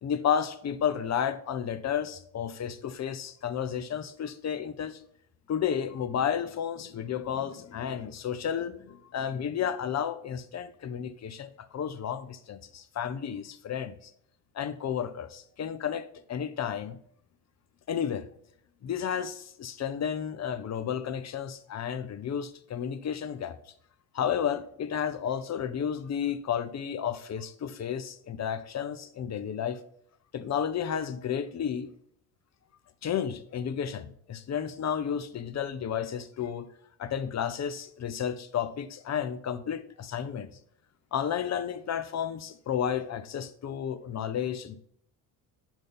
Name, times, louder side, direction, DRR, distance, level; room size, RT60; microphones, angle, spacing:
voice 1, 0.0-5.0 5.5-14.1 14.5-17.0 17.9-18.3 18.8-23.6 24.1-29.8 30.3-31.9 33.0-36.7 37.0-40.5 41.1-44.8, left 8 dB, 35° left, 13 dB, 0.7 m, -32 dB
7.1 x 5.3 x 3.7 m, 0.66 s
hypercardioid pair, 60°, 47 cm